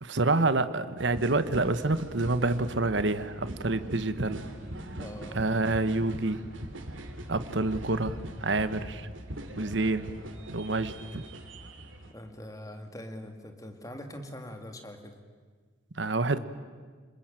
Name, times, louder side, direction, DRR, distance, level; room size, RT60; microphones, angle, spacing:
voice 1, 0.0-4.4 5.3-6.4 7.3-9.1 9.6-10.1 10.5-11.2 16.0-16.4, right 2 dB, 65° right, 12 dB, 1.1 m, -28 dB
sound 1, 1.0-12.1, right 1 dB, 80° right, 2.9 m, -42 dB
voice 2, 5.0-5.4 12.1-15.2, left 1 dB, 15° left, 5 dB, 2.2 m, -43 dB
26.0 x 21.5 x 9.0 m, 1.5 s
head